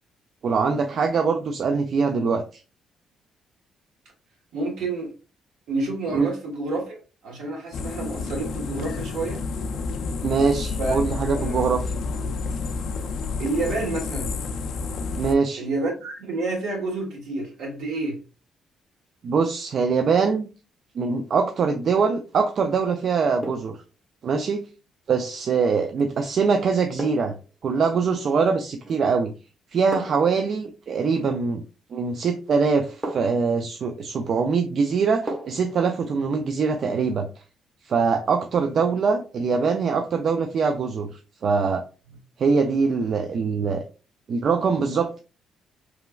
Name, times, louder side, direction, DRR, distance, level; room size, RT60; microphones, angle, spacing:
voice 1, 0.4-2.6 6.1-6.3 10.2-11.8 15.1-15.6 19.2-20.5 21.0-23.8 24.2-24.6 25.1-27.3 27.6-29.3 29.7-31.6 31.9-37.3 37.8-41.8 42.4-43.8 44.3-45.2, right 5 dB, 60° right, 0.3 m, -23 dB
voice 2, 4.5-5.1 5.7-7.0 7.2-9.4 10.8-11.0 11.3-11.6 13.4-14.4 15.6-18.2, right 2 dB, 80° right, 1.1 m, -29 dB
sound 1, 7.7-15.4, left 4 dB, 70° left, 0.3 m, -30 dB
sound 2, 21.8-22.2 23.4-23.8 25.9-26.1 27.0-27.4 28.8-29.2 29.9-30.4 32.0-32.1 33.0-33.5 35.3-35.7 36.1-36.2, right 1 dB, 30° right, 0.7 m, -35 dB
3.1 x 2.2 x 2.3 m
cardioid pair, 90°, 0 cm